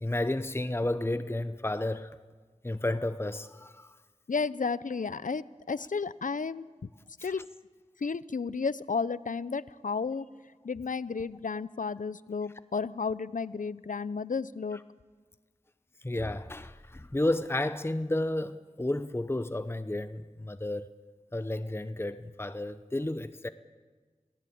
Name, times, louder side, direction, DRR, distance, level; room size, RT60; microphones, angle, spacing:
voice 1, 0.0-2.1 2.6-3.9 7.2-7.3 16.0-20.9 21.3-23.5, left 1 dB, 20° left, 0.8 m, -32 dB
voice 2, 4.3-6.7 7.2-7.4 8.0-10.3 10.6-14.8, left 5 dB, 80° left, 0.6 m, -32 dB
27.0 x 17.5 x 8.7 m
wide cardioid pair, 45°, 13 cm